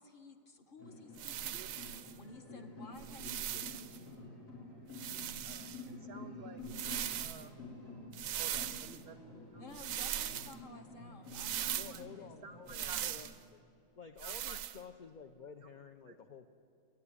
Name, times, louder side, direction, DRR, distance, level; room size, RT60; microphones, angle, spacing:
voice 1, 0.0-4.4 9.6-12.3, left 2 dB, 45° left, 5 dB, 1.0 m, -55 dB
sound 1, 0.8-13.1, left 2 dB, 85° left, 4.3 m, -50 dB
sound 2, 1.2-2.1 3.0-4.0 4.9-5.8 6.6-7.4 8.1-9.0 9.7-10.5 11.3-12.0 12.7-13.4 14.2-14.8, right 11 dB, 80° right, 1.0 m, -40 dB
voice 2, 4.9-6.6 7.2-7.5 8.4-9.6 11.6-12.0 12.4-13.0 14.2-14.6 15.6-15.7 16.1-16.2, right 5 dB, 60° right, 10 dB, 0.7 m, -53 dB
voice 3, 11.8-13.6 14.0-16.5, left 6 dB, 60° left, 6 dB, 0.4 m, -51 dB
13.0 x 9.3 x 9.7 m, 2.6 s
omnidirectional pair, 1.4 m